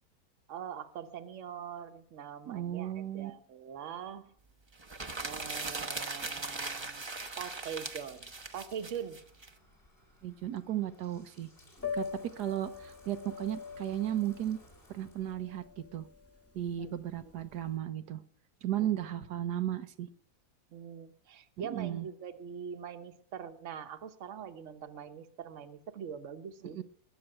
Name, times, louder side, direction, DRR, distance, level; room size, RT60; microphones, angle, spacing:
voice 1, 0.5-4.3 5.2-7.0 7.4-9.2 16.8-16.9 18.8-19.1 20.7-26.8, right 8 dB, 55° right, 8 dB, 1.3 m, -43 dB
voice 2, 2.5-3.3 10.2-11.5 11.9-14.6 14.9-16.1 16.5-18.2 18.6-20.1 21.6-22.1 26.7-26.8, right 11 dB, 90° right, 9 dB, 1.4 m, -35 dB
Bathtub (filling or washing), 4.0-15.3, left 1 dB, 35° left, 3.3 m, -61 dB
sound 1, 4.8-9.5, right 3 dB, 20° right, 0.8 m, -39 dB
Piano, 11.8-17.7, left 6 dB, 10° left, 1.5 m, -43 dB
21.0 x 7.1 x 8.9 m, 0.62 s
omnidirectional pair, 1.7 m